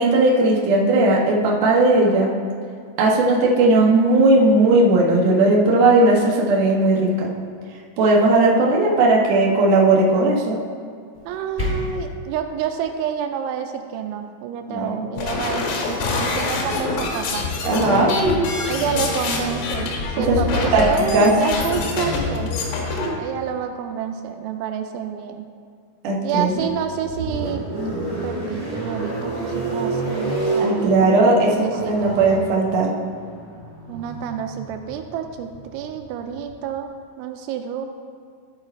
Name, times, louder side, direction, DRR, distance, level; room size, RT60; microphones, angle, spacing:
voice 1, 0.0-2.3 3.0-7.3 8.0-10.6 14.7-15.0 17.6-18.5 20.3-20.4 20.7-21.3 22.9-23.1 26.0-26.6 30.6-32.9, right 2 dB, 70° right, -2 dB, 2.0 m, -17 dB
sound 1, 11.1-12.1, left 2 dB, 60° left, 0.4 m, -28 dB
voice 2, 11.3-17.5 18.7-22.5 23.2-25.5 26.2-27.7 28.2-31.2 31.5-32.2 33.9-36.9 37.2-37.9, right 8 dB, 85° right, 6 dB, 2.9 m, -28 dB
sound 2, 15.2-23.1, left 4 dB, 90° left, 3.6 m, -25 dB
sound 3, 26.3-36.6, right 2 dB, 50° right, 3.1 m, -29 dB
13.5 x 4.6 x 4.4 m, 2.2 s
omnidirectional pair, 5.4 m